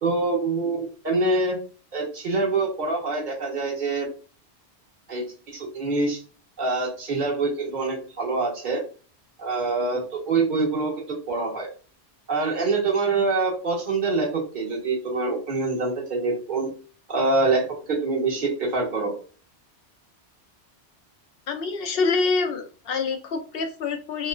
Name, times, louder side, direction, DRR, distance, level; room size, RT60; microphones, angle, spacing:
voice 1, 0.0-1.6 1.9-4.1 5.1-5.2 5.5-6.2 6.6-8.8 9.4-10.9 11.3-11.7 12.3-16.7 17.1-19.1, right 3 dB, 45° right, -3 dB, 1.3 m, -25 dB
voice 2, 21.5-24.3, left 4 dB, 65° left, 6 dB, 0.7 m, -26 dB
3.0 x 2.9 x 2.4 m, 0.39 s
omnidirectional pair, 1.1 m